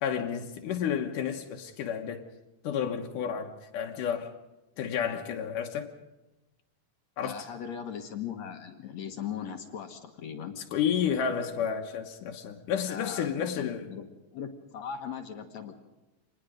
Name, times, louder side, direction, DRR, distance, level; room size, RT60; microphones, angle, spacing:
voice 1, 0.0-2.2 2.6-4.3 4.8-5.9 7.2-7.5 10.6-13.9, left 8 dB, 90° left, 2.8 m, -31 dB
voice 2, 7.2-10.6 12.9-14.1 14.3-15.8, left 8 dB, 65° left, 2.5 m, -39 dB
26.5 x 20.5 x 5.1 m
omnidirectional pair, 3.6 m